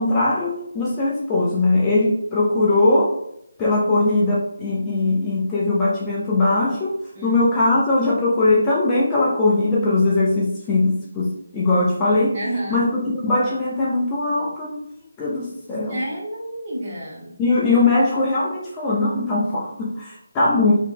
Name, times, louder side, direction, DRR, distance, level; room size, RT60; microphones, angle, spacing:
voice 1, 0.0-3.2 3.6-12.4 12.7-14.8 15.2-16.0 17.4-20.7, left 2 dB, 15° left, -6 dB, 0.5 m, -20 dB
voice 2, 12.3-12.8 15.9-17.3, right 1 dB, 30° right, -6 dB, 1.3 m, -29 dB
3.1 x 2.9 x 3.3 m, 0.79 s
figure-of-eight pair, 160°, 0 cm